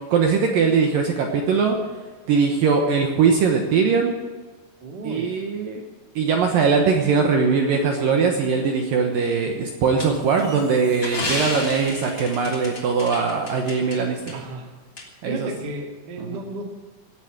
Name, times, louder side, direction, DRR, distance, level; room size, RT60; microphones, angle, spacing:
voice 1, 0.1-1.8 2.3-4.1 5.0-5.8 6.2-14.2 15.2-15.5 16.2-16.4, right 5 dB, 70° right, 2 dB, 2.3 m, -21 dB
voice 2, 4.8-5.3 14.3-14.7 15.2-16.6, right 2 dB, 45° right, 2 dB, 1.4 m, -33 dB
sound 1, 10.0-14.0 14.3-14.4 15.0-15.1, left 2 dB, 20° left, 2.7 m, -31 dB
17.5 x 8.3 x 8.9 m, 1.3 s
omnidirectional pair, 5.3 m